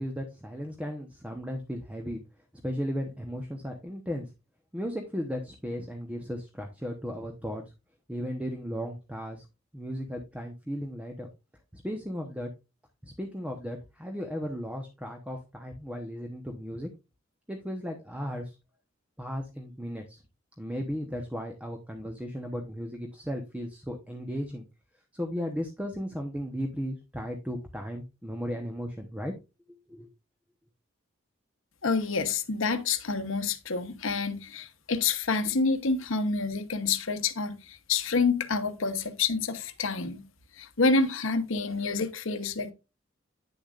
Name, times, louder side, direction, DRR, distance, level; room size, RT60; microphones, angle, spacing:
voice 1, 0.0-2.2 2.6-4.3 4.7-7.6 8.1-9.4 9.7-11.3 11.7-12.5 13.0-16.9 17.5-18.6 19.2-20.2 20.6-24.6 25.1-29.3 29.7-30.1, equal, 5° right, 1.0 m, -35 dB
voice 2, 31.8-40.2 40.6-42.7, left 4 dB, 70° left, 1.0 m, -28 dB
9.8 x 7.1 x 2.5 m
head